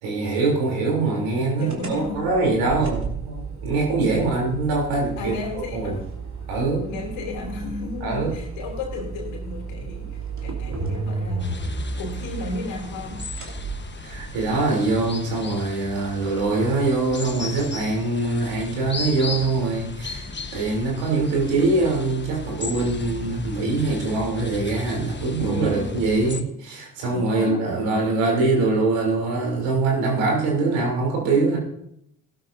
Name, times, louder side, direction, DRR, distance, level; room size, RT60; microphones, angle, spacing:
voice 1, 0.0-5.3 5.7-6.0 6.5-6.9 8.0-8.4 14.0-31.6, right 3 dB, 75° right, -1 dB, 3.4 m, -23 dB
voice 2, 1.6-2.3 5.1-6.2 6.9-11.6 12.0-13.3 25.3-26.0 27.1-28.1, left 3 dB, 75° left, 1 dB, 3.0 m, -34 dB
sound 1, 1.7-14.5, right 4 dB, 40° right, 2.9 m, -33 dB
sound 2, 11.4-26.4, left 4 dB, 25° left, 1.2 m, -36 dB
16.5 x 12.5 x 2.7 m, 0.73 s
hypercardioid pair, 45°, 45 cm